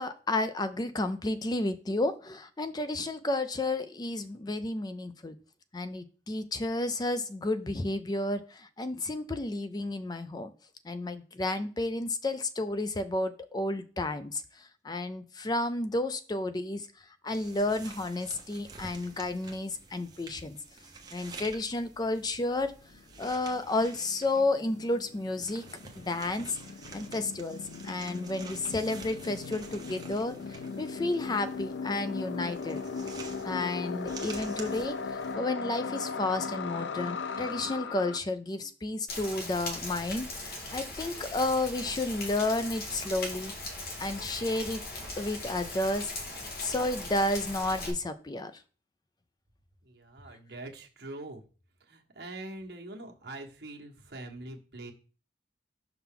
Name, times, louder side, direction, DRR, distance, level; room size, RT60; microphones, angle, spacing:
voice 1, 0.0-5.4 5.7-10.5 10.8-16.9 17.2-20.6 21.1-22.7 23.2-25.7 26.0-26.6 26.9-32.8 33.4-43.5 44.0-44.8 45.2-46.1 46.6-48.5, left 2 dB, 25° left, 11 dB, 0.4 m, -31 dB
sound 1, 17.3-35.3, right 4 dB, 25° right, 0.9 m, -49 dB
sound 2, 22.7-22.8 22.9-38.2, left 5 dB, 80° left, 0.5 m, -38 dB
Rain, 39.1-47.9, left 2 dB, 60° left, 1.5 m, -39 dB
voice 2, 49.8-51.4 51.8-54.9, right 2 dB, 65° right, 1 dB, 1.3 m, -43 dB
5.8 x 5.7 x 3.7 m, 0.38 s
head